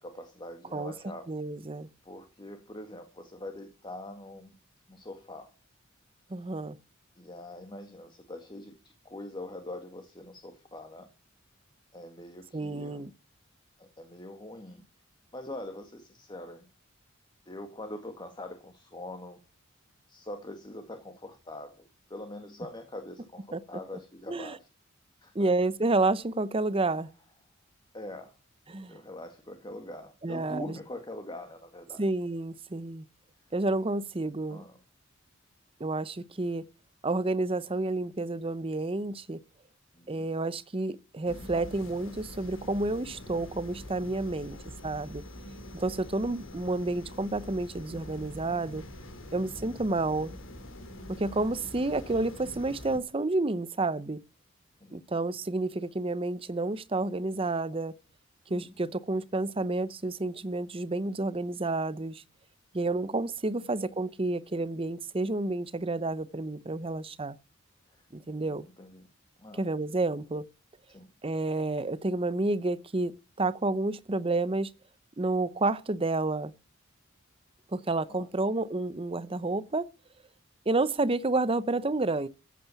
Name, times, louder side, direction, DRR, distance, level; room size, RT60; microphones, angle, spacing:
voice 1, 0.0-1.3 2.0-4.6 4.9-5.5 7.2-11.1 11.9-13.1 13.8-14.9 15.3-16.7 17.5-19.4 20.1-24.7 25.2-25.5 26.8-27.0 27.9-28.4 28.9-32.1 34.5-34.8 39.9-40.3 44.2-44.7 46.1-46.2 49.2-49.5 54.8-55.1 58.5-58.9 63.6-63.9 67.9-68.0 68.4-69.1 69.4-69.6 70.9-71.1 78.1-78.3, left 1 dB, 20° left, 1.9 m, -44 dB
voice 2, 1.3-1.9 6.3-6.8 12.5-13.1 23.5-23.6 24.3-24.6 25.3-27.1 28.7-29.0 30.2-30.8 32.0-33.0 33.5-34.6 35.8-36.7 37.0-39.4 40.1-44.6 44.8-45.2 45.7-48.8 49.3-50.3 51.1-54.2 54.9-58.0 58.5-62.2 62.7-67.4 68.1-68.7 69.6-70.5 71.2-74.7 75.2-76.5 77.7-79.9 80.7-82.3, right 2 dB, 25° right, 0.7 m, -30 dB
sound 1, 41.3-53.0, left 1 dB, 65° left, 3.5 m, -45 dB
15.0 x 8.5 x 7.1 m
head